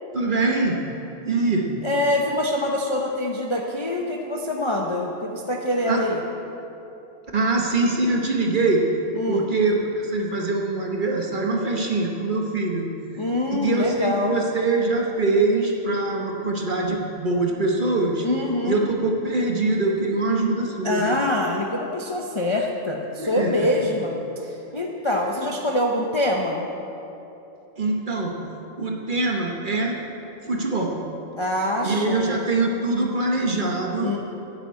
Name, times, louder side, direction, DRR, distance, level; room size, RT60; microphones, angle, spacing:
voice 1, 0.1-0.8 1.2-1.7 5.9-6.0 7.3-8.8 9.3-12.9 13.5-18.3 18.6-21.1 23.2-23.7 27.8-28.4 28.8-30.0 30.5-31.0 31.8-34.1, right 3 dB, 40° right, 0 dB, 1.1 m, -23 dB
voice 2, 1.8-6.2 9.1-9.5 13.2-14.4 18.2-18.8 20.8-26.6 31.4-32.4 34.0-34.2, left 1 dB, 30° left, 0 dB, 0.6 m, -25 dB
9.6 x 6.8 x 8.2 m, 2.9 s
omnidirectional pair, 1.5 m